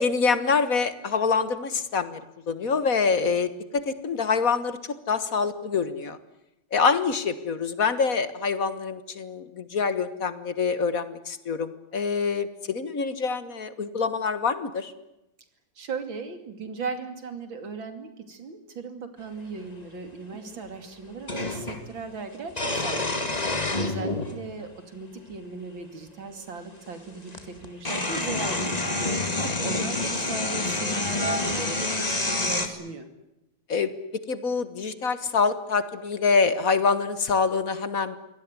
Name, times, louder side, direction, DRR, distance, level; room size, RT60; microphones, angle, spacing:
voice 1, 0.0-2.2 2.5-4.8 5.1-6.2 6.7-14.9 20.5-20.6 29.4-29.5 29.7-29.8 33.7-33.9 34.3-38.2, left 5 dB, 50° left, 12 dB, 1.7 m, -25 dB
voice 2, 15.8-23.3 23.8-33.1, right 4 dB, 85° right, 8 dB, 3.5 m, -37 dB
sound 1, 19.6-19.7 21.3-21.8 22.5-24.3 25.3-25.4 26.9-27.0 27.3-32.7, left 2 dB, 20° left, 2.2 m, -28 dB
24.5 x 18.0 x 9.7 m, 0.89 s
omnidirectional pair, 2.1 m